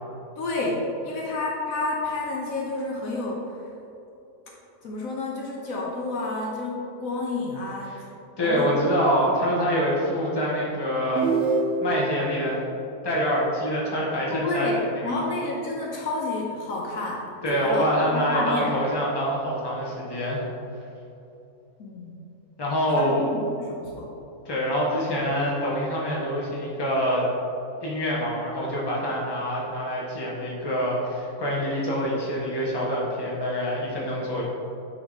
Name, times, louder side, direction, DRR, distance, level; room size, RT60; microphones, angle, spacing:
voice 1, 0.4-3.4 4.8-8.0 8.4-8.9 14.3-18.8 21.8-22.2 23.0-24.1, left 2 dB, 65° left, -2 dB, 1.2 m, -30 dB
voice 2, 8.4-11.3 11.8-12.7 13.0-15.2 17.4-20.4 22.6-23.2 24.4-27.3 27.8-34.4, equal, 15° left, -5 dB, 1.1 m, -25 dB
sound 1, 11.2-12.2, right 3 dB, 55° right, 0.7 m, -24 dB
9.1 x 3.5 x 4.0 m, 2.9 s
omnidirectional pair, 1.6 m